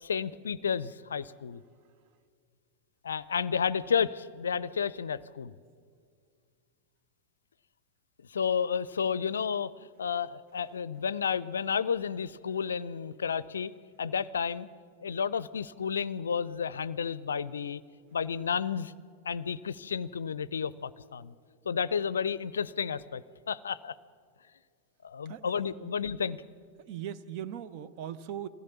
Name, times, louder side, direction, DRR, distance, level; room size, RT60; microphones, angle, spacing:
voice 1, 0.0-1.6 3.0-5.5 8.3-9.7 10.0-13.7 14.0-14.7 15.0-17.8 18.1-18.9 19.2-21.3 21.7-23.9 25.0-26.4, left 6 dB, 70° left, 19 dB, 0.5 m, -31 dB
voice 2, 26.8-28.5, right 10 dB, 45° right, 14 dB, 0.8 m, -39 dB
23.0 x 16.0 x 7.1 m, 2.1 s
figure-of-eight pair, 90°, 0 cm